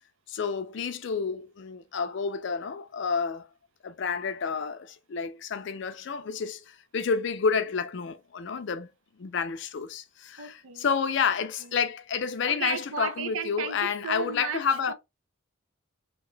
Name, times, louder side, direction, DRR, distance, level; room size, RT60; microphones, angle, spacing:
voice 1, 0.3-3.5 3.8-8.9 9.2-14.9, left 6 dB, 60° left, 0.4 m, -30 dB
voice 2, 10.4-10.8 11.6-11.7 12.5-14.9, right 7 dB, 80° right, 0.5 m, -35 dB
2.8 x 2.2 x 3.2 m
head